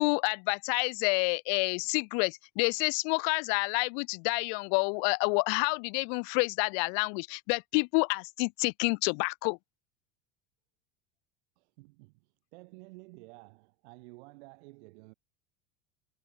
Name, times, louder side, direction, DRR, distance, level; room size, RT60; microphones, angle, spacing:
voice 1, 0.0-9.6, left 40 dB or more, 75° left, 1.3 m, -28 dB
voice 2, 11.6-15.1, right 26 dB, 80° right, 6.9 m, -52 dB
supercardioid pair, 115°, 33 cm